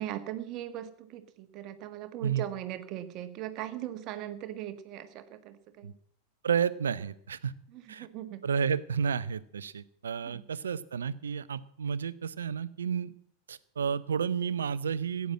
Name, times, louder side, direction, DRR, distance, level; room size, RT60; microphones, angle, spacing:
voice 1, 0.0-5.9 7.7-8.4 10.2-10.5, right 12 dB, 40° right, 10 dB, 1.5 m, -39 dB
voice 2, 6.4-7.5 7.9-8.1 8.4-13.1 13.5-15.3, right 7 dB, 70° right, 18 dB, 0.7 m, -31 dB
15.5 x 9.4 x 7.5 m, 0.66 s
figure-of-eight pair, 90°, 0 cm